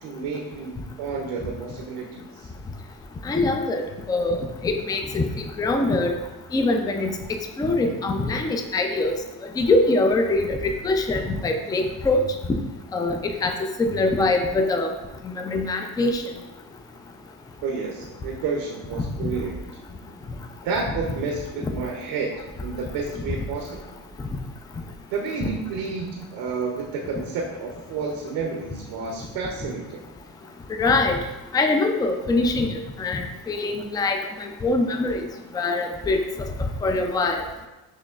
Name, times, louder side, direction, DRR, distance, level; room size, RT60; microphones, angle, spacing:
voice 1, 0.0-2.5 17.6-19.6 20.6-22.3 22.6-23.7 25.1-30.0, right 4 dB, 90° right, 0 dB, 0.7 m, -30 dB
voice 2, 3.2-4.4 4.6-5.2 5.6-6.1 6.5-7.1 7.6-9.1 9.6-12.2 12.9-13.5 13.8-14.9 15.2-16.2 19.2-19.3 30.8-31.2 31.5-32.7 33.0-35.2 35.5-36.2 36.6-37.4, left 2 dB, 10° left, 5 dB, 0.3 m, -23 dB
6.4 x 3.0 x 2.4 m, 1.1 s
cardioid pair, 90°, 36 cm